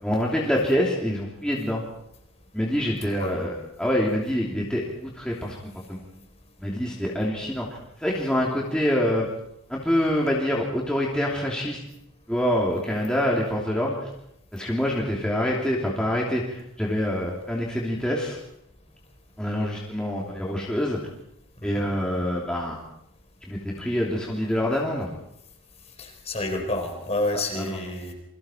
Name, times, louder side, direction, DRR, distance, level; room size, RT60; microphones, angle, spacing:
voice 1, 0.0-1.8 2.5-5.6 5.9-6.0 6.6-7.7 8.0-9.3 9.7-11.8 12.3-14.1 14.5-18.4 19.4-21.0 21.6-22.8 23.5-25.1 27.5-27.8, equal, 5° left, -4 dB, 3.0 m, -26 dB
voice 2, 3.2-3.5 21.6-21.8 26.0-28.1, left 2 dB, 30° left, 4 dB, 4.0 m, -29 dB
28.5 x 24.0 x 4.5 m, 0.78 s
head